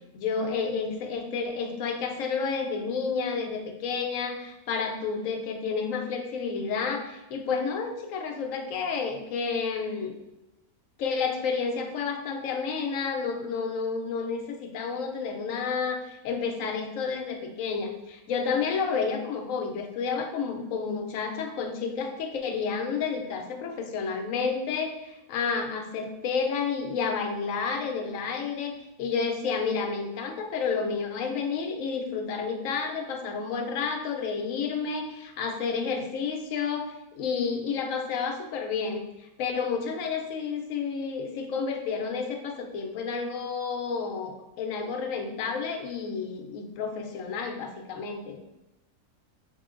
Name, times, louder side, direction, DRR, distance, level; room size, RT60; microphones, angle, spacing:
voice 1, 0.1-10.1 11.0-48.4, left 5 dB, 70° left, 4 dB, 0.9 m, -30 dB
3.7 x 2.7 x 3.7 m, 0.96 s
omnidirectional pair, 1.6 m